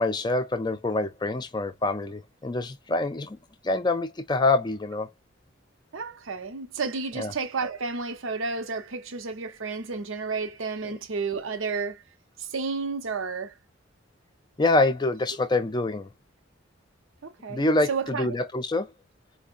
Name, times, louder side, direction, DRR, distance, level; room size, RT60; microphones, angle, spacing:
voice 1, 0.0-3.4 3.6-5.1 7.2-7.3 14.6-16.1 17.5-18.9, left 2 dB, 20° left, 0.4 m, -25 dB
voice 2, 5.9-12.0 12.4-13.5 17.2-18.3, right 4 dB, 85° right, 0.8 m, -31 dB
4.6 x 2.1 x 2.5 m
head